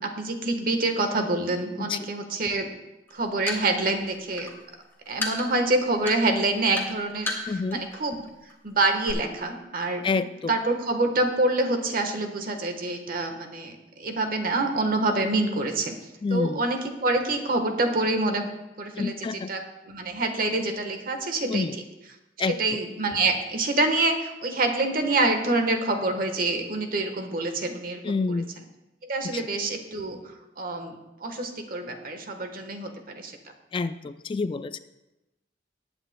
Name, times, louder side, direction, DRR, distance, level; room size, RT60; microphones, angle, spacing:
voice 1, 0.0-2.7 3.1-4.5 5.1-8.2 8.6-15.9 16.3-18.5 18.8-21.7 22.4-28.4 29.0-30.2 30.6-33.3, right 2 dB, 55° right, 5 dB, 1.3 m, -26 dB
sound 1, 3.1-8.0 8.3-8.5 8.8-9.1, left 2 dB, 15° left, 1.7 m, -33 dB
voice 2, 7.5-7.8 10.0-10.5 16.2-16.6 19.0-19.5 21.5-21.7 22.4-22.6 28.0-28.5 29.3-29.4 33.7-34.8, left 4 dB, 30° left, 12 dB, 0.3 m, -28 dB
19.5 x 9.0 x 2.2 m, 0.99 s
head